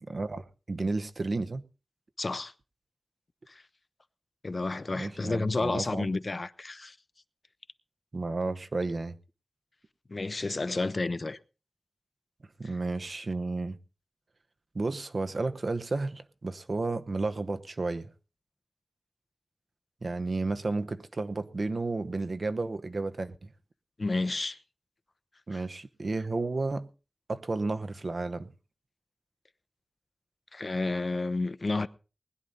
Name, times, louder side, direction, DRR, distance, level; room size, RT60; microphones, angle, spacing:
voice 1, 0.0-1.6 4.9-6.1 8.1-9.2 12.6-13.8 14.7-18.1 20.0-23.5 25.5-26.9 27.3-28.5, right 3 dB, 55° right, 0.9 m, -32 dB
voice 2, 2.2-2.5 3.5-3.6 4.4-7.0 10.1-11.4 24.0-24.6 25.5-25.6 30.5-31.9, left 3 dB, 50° left, 0.7 m, -31 dB
20.0 x 10.5 x 4.0 m
wide cardioid pair, 85°, 0 cm